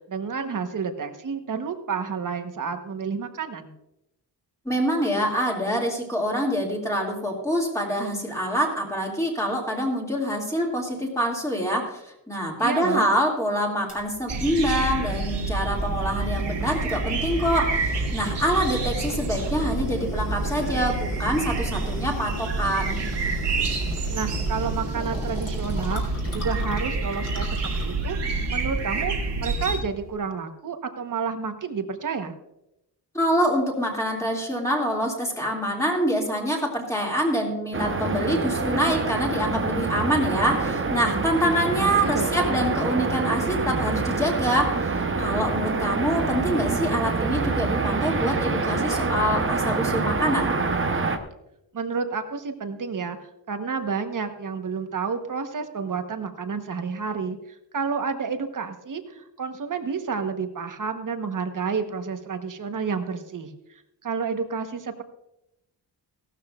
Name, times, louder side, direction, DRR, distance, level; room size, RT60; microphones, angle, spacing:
voice 1, 0.1-3.7 12.6-13.1 24.1-29.1 29.4-32.4 41.4-42.6 51.7-53.2 53.5-57.4 57.7-65.0, right 5 dB, 45° right, 7 dB, 1.1 m, -30 dB
voice 2, 4.7-12.0 12.3-23.0 33.1-50.5, equal, 5° left, -1 dB, 2.4 m, -25 dB
sound 1, 13.9-30.2, left 1 dB, 35° left, 3.5 m, -39 dB
sound 2, 14.3-29.8, right 3 dB, 70° right, 2.0 m, -28 dB
sound 3, 37.7-51.2, right 3 dB, 30° right, 0.9 m, -26 dB
16.5 x 12.5 x 2.4 m, 0.85 s
wide cardioid pair, 160°, 43 cm